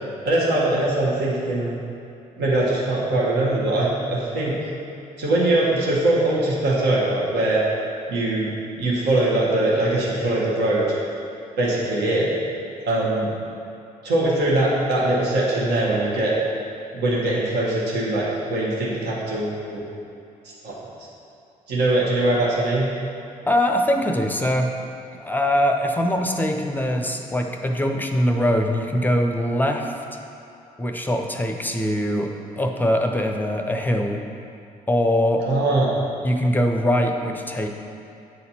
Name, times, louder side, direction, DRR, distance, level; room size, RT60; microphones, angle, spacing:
voice 1, 0.2-1.8 2.4-4.5 5.2-7.6 8.1-8.5 8.8-10.9 11.6-12.3 12.9-13.3 14.0-16.3 16.9-19.8 20.6-20.7 21.7-22.9 35.4-35.9, right 2 dB, 55° right, -6 dB, 1.5 m, -21 dB
voice 2, 23.5-24.7 25.1-29.9 30.8-32.3 32.6-34.2 34.9-35.4 36.2-37.7, equal, 10° left, 3 dB, 0.7 m, -22 dB
9.2 x 4.2 x 4.3 m, 2.6 s
figure-of-eight pair, 45°, 20 cm